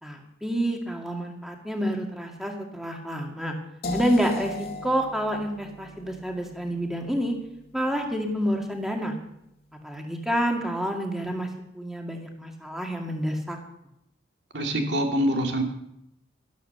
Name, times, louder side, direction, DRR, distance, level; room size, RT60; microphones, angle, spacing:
voice 1, 0.0-3.6 3.9-7.4 7.7-9.1 9.8-13.6, equal, ahead, 2 dB, 2.1 m, -28 dB
sound 1, 3.8-9.7, left 2 dB, 55° left, 1.9 m, -39 dB
voice 2, 14.5-15.6, equal, 65° right, 3 dB, 2.5 m, -25 dB
12.5 x 12.5 x 6.8 m, 0.79 s
head